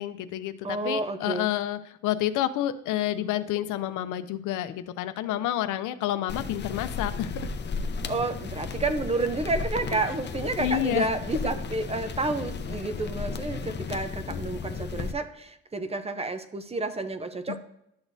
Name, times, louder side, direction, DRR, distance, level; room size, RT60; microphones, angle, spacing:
voice 1, 0.0-7.4 10.6-11.1 14.3-14.4 17.5-17.6, left 12 dB, 85° left, 11 dB, 0.5 m, -29 dB
voice 2, 0.6-1.5 8.1-17.6, right 2 dB, 20° right, 10 dB, 0.6 m, -30 dB
sound 1, 6.3-15.1, left 5 dB, 35° left, 0.6 m, -34 dB
11.5 x 6.1 x 2.7 m, 0.78 s
cardioid pair, 90°, 30 cm